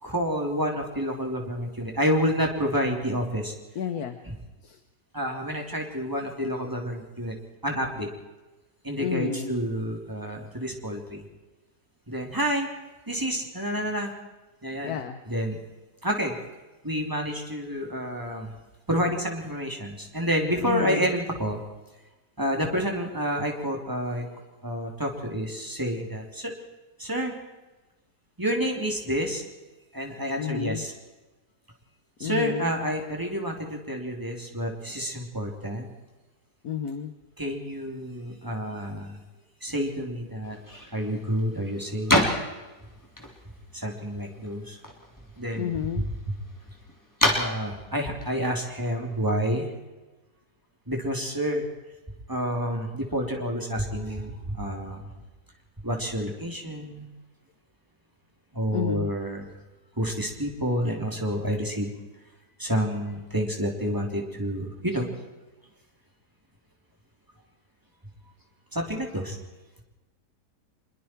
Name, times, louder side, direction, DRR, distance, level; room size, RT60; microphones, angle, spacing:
voice 1, 0.0-3.5 4.2-4.3 5.1-7.4 7.6-8.1 8.8-11.2 12.1-12.7 13.1-14.1 14.6-15.0 15.3-15.6 16.0-16.4 16.8-18.5 18.9-21.6 22.4-24.2 24.6-26.5 27.0-27.3 28.4-29.4 29.9-30.9 32.2-35.9 37.4-39.2 39.6-40.6 40.9-42.2 43.7-44.8 45.4-45.7 46.0-46.1 47.3-49.7 50.9-51.7 52.3-55.0 55.8-57.1 58.5-59.5 60.0-61.9 62.6-65.1 68.7-69.4, equal, 10° right, 1 dB, 3.3 m, -29 dB
voice 2, 3.7-4.2 4.6-4.8 9.0-9.6 14.8-15.2 20.6-21.1 30.4-30.8 32.2-32.8 36.6-37.1 45.5-46.1 58.7-59.1, left 8 dB, 65° left, 8 dB, 1.5 m, -31 dB
sound 1, 40.4-49.6, left 1 dB, 10° left, 3.2 m, -31 dB
25.0 x 22.5 x 4.6 m, 1.1 s
omnidirectional pair, 1.8 m